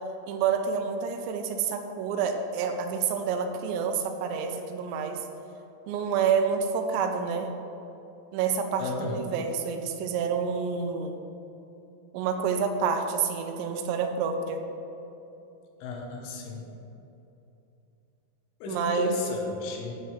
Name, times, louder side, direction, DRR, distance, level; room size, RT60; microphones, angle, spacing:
voice 1, 0.3-5.2 5.9-7.5 8.3-11.2 12.1-14.6 18.7-19.1, right 6 dB, 90° right, 5 dB, 3.4 m, -28 dB
voice 2, 8.8-9.2 15.8-16.6 18.6-19.9, left 3 dB, 80° left, 1 dB, 3.6 m, -34 dB
14.0 x 7.7 x 3.3 m, 2.9 s
omnidirectional pair, 6.0 m